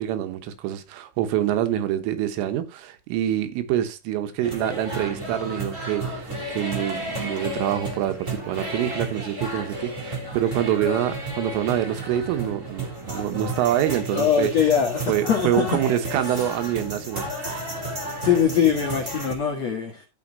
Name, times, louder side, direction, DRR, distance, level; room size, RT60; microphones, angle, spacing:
voice 1, 0.0-14.5 15.1-17.3, right 11 dB, 80° right, 3.7 m, -26 dB
sound 1, 4.4-19.3, right 1 dB, 20° right, 2.5 m, -32 dB
voice 2, 14.1-15.5 18.2-20.0, left 8 dB, 75° left, 1.5 m, -22 dB
13.5 x 5.8 x 4.0 m
omnidirectional pair, 5.8 m